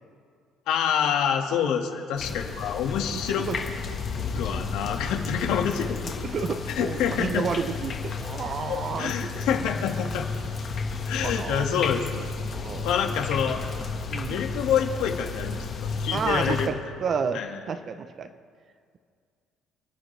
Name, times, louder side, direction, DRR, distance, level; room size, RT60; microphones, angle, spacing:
voice 1, 0.7-3.5 4.3-6.0 6.8-7.5 8.7-10.3 11.1-12.3 12.8-13.6 14.3-16.7 17.3-17.6, left 8 dB, 75° left, 3 dB, 1.9 m, -27 dB
sound 1, 2.2-16.7, left 4 dB, 35° left, 1.7 m, -32 dB
voice 2, 3.1-3.6 4.4-4.7 6.2-9.4 11.2-11.8 12.6-12.9 14.1-14.4 16.1-18.3, right 5 dB, 35° right, 9 dB, 0.8 m, -31 dB
30.0 x 10.5 x 3.4 m, 2.1 s
cardioid pair, 150°, 0 cm